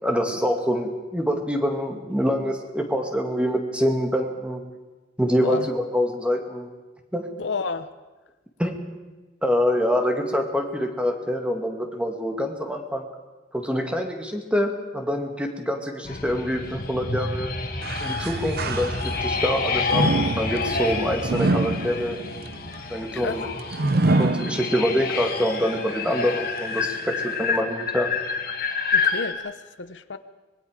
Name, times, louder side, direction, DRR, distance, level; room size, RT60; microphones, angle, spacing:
voice 1, 0.0-4.6 5.2-6.7 7.1-7.3 8.6-8.7 9.4-13.0 13.5-17.5 18.0-22.2 22.9-23.5 24.2-28.1, equal, 5° right, 3 dB, 2.1 m, -25 dB
voice 2, 7.4-7.9 23.1-23.4 28.9-30.2, left 4 dB, 85° left, 11 dB, 0.9 m, -31 dB
sound 1, 16.1-29.3, left 4 dB, 55° left, 2.1 m, -28 dB
sound 2, 17.8-19.4 19.9-25.1 25.6-25.7 26.6-26.7, right 2 dB, 55° right, 0.8 m, -26 dB
25.0 x 21.0 x 5.1 m, 1.2 s
head